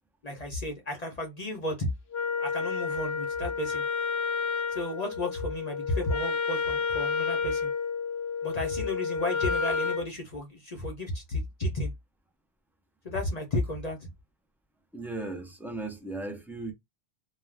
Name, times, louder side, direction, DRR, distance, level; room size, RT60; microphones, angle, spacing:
voice 1, 0.2-1.9 2.4-3.8 4.7-7.7 8.4-11.9 13.0-14.1, left 1 dB, 45° left, 0.7 m, -33 dB
Wind instrument woodwind instrument, 2.1-10.1, left 5 dB, 80° left, 0.9 m, -30 dB
voice 2, 14.9-16.7, right 2 dB, ahead, 0.4 m, -36 dB
2.4 x 2.2 x 3.2 m
omnidirectional pair, 1.0 m